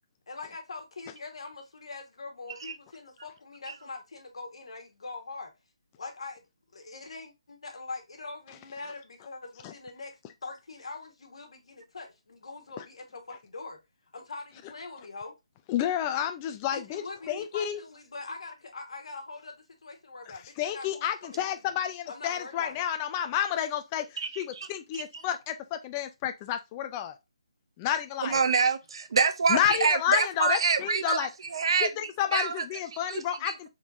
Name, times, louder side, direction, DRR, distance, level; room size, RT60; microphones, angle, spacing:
voice 1, 0.3-5.5 6.0-6.4 6.7-13.8 14.1-15.3 16.7-19.5 19.8-21.6 22.1-22.7, left 3 dB, 70° left, 1.4 m, -43 dB
voice 2, 15.7-17.8 20.6-27.2 27.8-28.4 29.5-31.3 31.8-33.7, left 10 dB, 20° left, 0.3 m, -30 dB
voice 3, 24.2-24.7 24.9-25.0 28.2-32.6 33.1-33.7, right 5 dB, 55° right, 0.7 m, -27 dB
4.5 x 3.6 x 2.5 m
hypercardioid pair, 160°, 3 cm